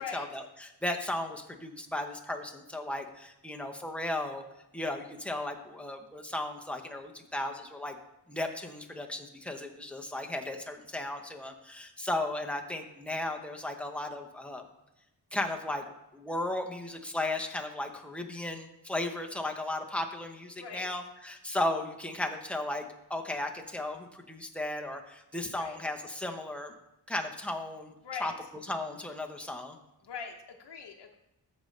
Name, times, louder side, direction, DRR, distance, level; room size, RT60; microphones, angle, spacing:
voice 1, 0.0-4.4 4.7-8.0 8.3-14.6 15.3-15.8 16.1-22.8 23.1-26.7 27.1-27.9 28.2-28.3 28.7-29.8, left 1 dB, 5° left, 2 dB, 0.9 m, -35 dB
voice 2, 28.0-28.3 30.0-31.1, left 6 dB, 75° left, 1 dB, 0.9 m, -41 dB
14.0 x 5.3 x 3.3 m, 0.91 s
wide cardioid pair, 115°, 41 cm